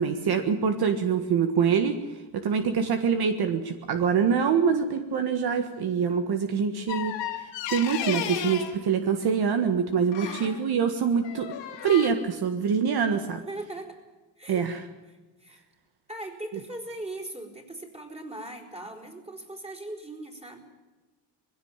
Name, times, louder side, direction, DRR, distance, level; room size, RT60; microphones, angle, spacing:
voice 1, 0.0-11.5 11.8-13.4 14.5-14.8, right 6 dB, 60° right, 7 dB, 1.6 m, -25 dB
sound 1, 6.9-8.8 10.1-10.5 11.2-12.1, left 10 dB, 85° left, 2.7 m, -33 dB
voice 2, 10.2-10.7 13.5-14.0 14.4-14.7 15.1-15.6 16.1-20.6, right 1 dB, 15° right, 4 dB, 4.4 m, -39 dB
20.5 x 16.5 x 8.9 m, 1.2 s
cardioid pair, 105°, 43 cm